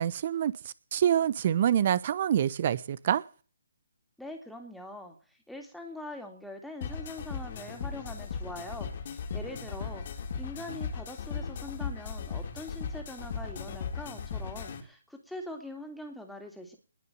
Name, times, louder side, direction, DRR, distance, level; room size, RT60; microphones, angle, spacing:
voice 1, 0.0-3.2, right 10 dB, 45° right, 20 dB, 1.0 m, -26 dB
voice 2, 4.2-10.1 10.3-16.8, left 1 dB, ahead, 3 dB, 3.0 m, -43 dB
sound 1, 6.8-14.8, left 6 dB, 45° left, 3.2 m, -37 dB
20.5 x 6.8 x 9.2 m, 0.39 s
figure-of-eight pair, 145°, 0 cm